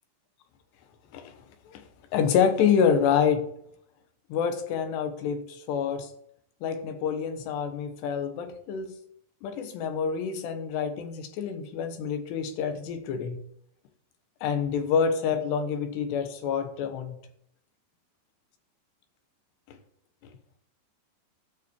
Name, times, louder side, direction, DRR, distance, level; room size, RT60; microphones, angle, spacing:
voice 1, 2.1-3.5 4.3-6.1 6.6-8.9 9.4-13.4 14.4-17.2 19.7-19.8, left 7 dB, 75° left, 7 dB, 3.2 m, -27 dB
16.5 x 5.8 x 4.6 m, 0.70 s
omnidirectional pair, 5.3 m